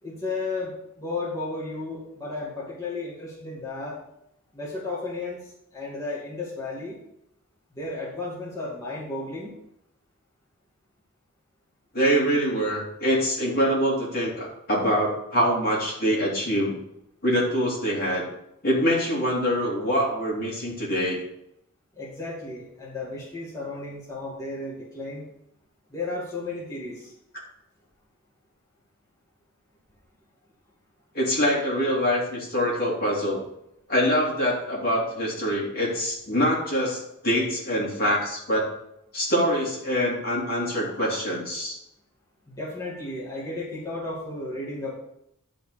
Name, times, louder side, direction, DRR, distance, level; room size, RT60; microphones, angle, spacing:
voice 1, 0.0-4.0 4.5-5.4 5.7-7.0 7.7-9.5 21.9-25.2 25.9-27.1 42.5-44.9, left 2 dB, 15° left, -7 dB, 2.2 m, -33 dB
voice 2, 11.9-16.8 17.2-18.2 18.6-21.2 31.1-33.4 33.9-38.7 39.1-41.8, equal, 45° left, -4 dB, 3.0 m, -24 dB
11.0 x 3.8 x 6.6 m, 0.78 s
head